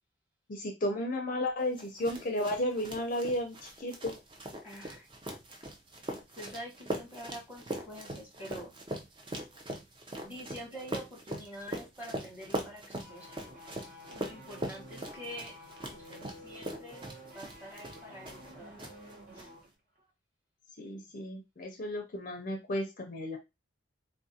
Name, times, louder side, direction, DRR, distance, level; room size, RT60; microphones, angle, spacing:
voice 1, 0.5-4.1 20.8-23.4, left 1 dB, 40° left, 3 dB, 0.5 m, -33 dB
sound 1, 1.8-18.5 18.8-19.4, right 1 dB, 25° right, 0.4 m, -41 dB
voice 2, 4.6-5.1 6.3-8.7 10.2-13.4 14.1-15.5 15.9-17.0 17.3-18.7 19.3-19.5, equal, 10° right, -3 dB, 1.0 m, -46 dB
sound 2, 13.0-19.7 20.0-20.1, left 1 dB, 40° right, 0.9 m, -51 dB
3.4 x 2.4 x 2.7 m, 0.24 s
head